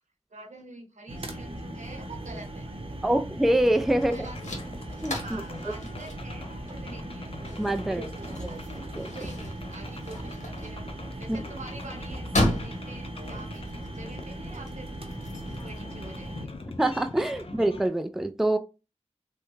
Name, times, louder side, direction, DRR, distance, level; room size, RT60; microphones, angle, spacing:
voice 1, 0.3-3.1 4.1-4.6 5.2-7.3 7.9-10.8 11.2-14.9 15.5-16.5 17.4-17.5, right 2 dB, 80° right, 1.0 m, -46 dB
sound 1, 1.1-16.5, right 1 dB, 50° right, 0.8 m, -38 dB
voice 2, 3.0-4.2 5.0-5.4 7.6-8.1 9.0-9.1 16.8-18.6, right 1 dB, ahead, 0.3 m, -25 dB
sound 2, 3.5-15.8, left 1 dB, 75° left, 0.9 m, -36 dB
sound 3, 3.8-17.9, left 3 dB, 50° left, 0.6 m, -46 dB
3.4 x 2.2 x 3.1 m
wide cardioid pair, 50°, 12 cm